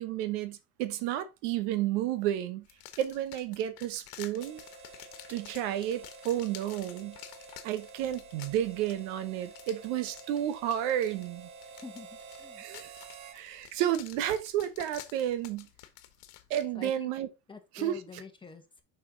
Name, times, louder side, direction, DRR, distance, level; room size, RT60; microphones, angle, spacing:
voice 1, 0.0-2.7 3.0-4.6 5.3-7.2 7.6-11.5 12.6-13.0 13.3-15.7 16.5-17.3 17.7-18.0, right 11 dB, 85° right, 1.2 m, -31 dB
sound 1, 2.6-16.7, left 13 dB, 75° left, 1.4 m, -51 dB
Harmonica, 4.3-13.4, right 5 dB, 60° right, 1.6 m, -50 dB
voice 2, 11.8-12.6 16.7-17.1 17.5-18.8, left 5 dB, 15° left, 1.6 m, -46 dB
6.4 x 5.7 x 3.9 m
cardioid pair, 120°, 35 cm